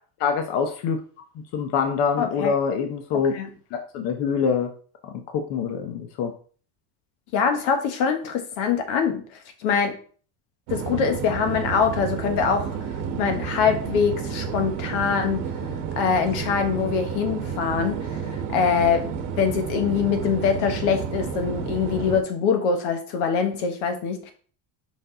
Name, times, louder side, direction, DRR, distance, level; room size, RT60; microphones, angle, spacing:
voice 1, 0.2-1.0 1.5-3.4 3.7-4.7 5.0-6.3, left 6 dB, 55° left, 5 dB, 0.8 m, -25 dB
voice 2, 2.2-2.5 3.1-3.5 7.3-9.2 9.6-9.9 10.7-12.7 13.2-15.4 16.0-18.0 18.5-24.3, left 6 dB, 80° left, 6 dB, 1.4 m, -23 dB
sound 1, 10.7-22.2, right 6 dB, 60° right, 1.1 m, -31 dB
5.3 x 4.6 x 3.8 m, 0.43 s
cardioid pair, 165°, 49 cm